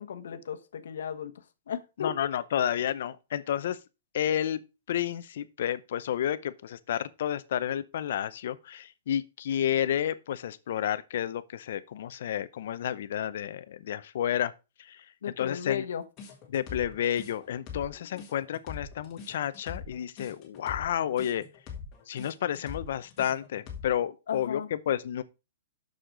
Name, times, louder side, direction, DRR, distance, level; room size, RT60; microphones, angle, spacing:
voice 1, 0.0-1.3 1.7-2.3 15.2-16.0 18.1-18.2 24.3-24.7, left 8 dB, 75° left, 1.1 m, -35 dB
voice 2, 2.0-3.8 4.1-4.6 4.9-14.5 14.8-15.0 15.4-15.8 16.5-21.4 22.1-25.2, left 10 dB, 55° left, 0.7 m, -31 dB
sound 1, 16.2-24.0, left 6 dB, 20° left, 1.6 m, -42 dB
6.6 x 6.4 x 4.7 m
hypercardioid pair, 175°, 0 cm